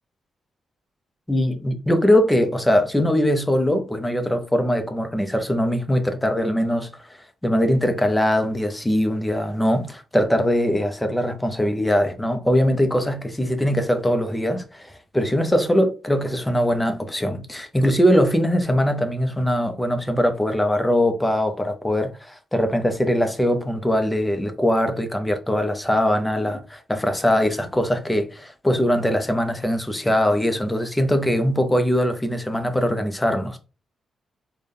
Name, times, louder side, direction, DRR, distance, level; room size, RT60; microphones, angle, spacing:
voice 1, 1.3-6.9 7.4-33.6, equal, 10° left, 0.5 m, -21 dB
3.9 x 2.1 x 3.4 m
cardioid pair, 140°, 0 cm